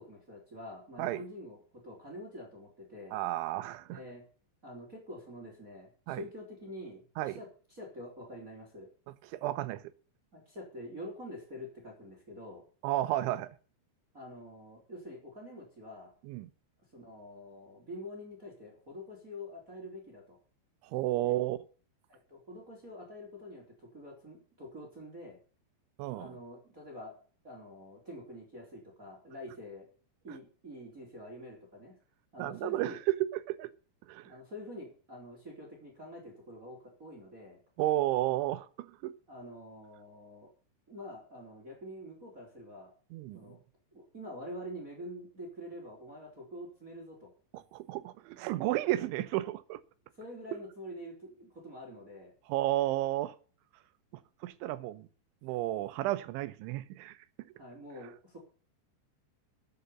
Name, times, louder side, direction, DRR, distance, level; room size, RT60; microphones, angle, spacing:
voice 1, 0.0-3.2 3.9-4.2 4.6-8.9 10.3-12.6 14.1-16.1 16.9-20.4 21.2-21.3 22.1-25.4 26.1-27.2 27.4-29.9 30.2-32.0 32.3-33.0 34.2-37.6 39.3-40.5 40.9-42.9 43.3-43.6 43.9-47.3 48.9-49.0 50.2-52.3 57.6-58.4, left 1 dB, 20° right, 3.8 m, -46 dB
voice 2, 3.1-4.0 6.1-6.3 7.2-7.4 9.3-9.8 12.8-13.6 16.2-16.5 20.9-21.6 26.0-26.3 32.4-33.7 34.1-34.3 37.8-39.1 43.1-43.6 47.5-49.8 52.5-53.4 54.4-55.1 55.4-57.5, right 15 dB, 90° right, 3.3 m, -32 dB
13.5 x 8.4 x 6.9 m
omnidirectional pair, 5.2 m